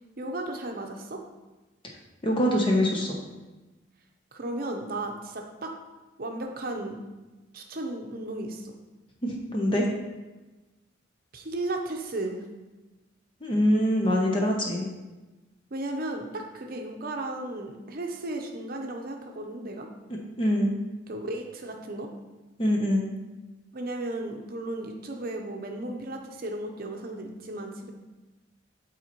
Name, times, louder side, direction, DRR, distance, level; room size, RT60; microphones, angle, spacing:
voice 1, 0.2-1.2 4.3-5.7 6.2-7.0 7.5-8.7 11.3-12.4 15.7-19.9 21.1-22.1 23.7-27.9, right 2 dB, 50° right, 3 dB, 0.7 m, -35 dB
voice 2, 2.2-3.2 9.2-9.9 13.4-14.9 20.4-20.8 22.6-23.1, equal, 25° left, -1 dB, 0.7 m, -24 dB
8.7 x 4.2 x 2.9 m, 1.1 s
head